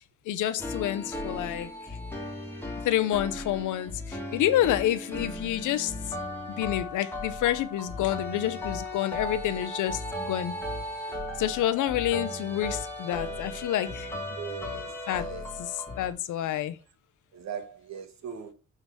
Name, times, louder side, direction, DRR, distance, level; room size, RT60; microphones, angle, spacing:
voice 1, 0.3-1.7 2.8-5.9 6.6-10.5 11.4-14.2 15.1-15.3 15.6-15.7 16.0-16.8, left 12 dB, 80° left, 0.8 m, -28 dB
sound 1, 0.6-16.1, left 1 dB, 5° left, 2.0 m, -36 dB
voice 2, 11.1-11.4 14.4-15.5 17.3-18.5, right 6 dB, 65° right, 1.5 m, -40 dB
6.4 x 3.9 x 6.1 m
cardioid pair, 90°, 30 cm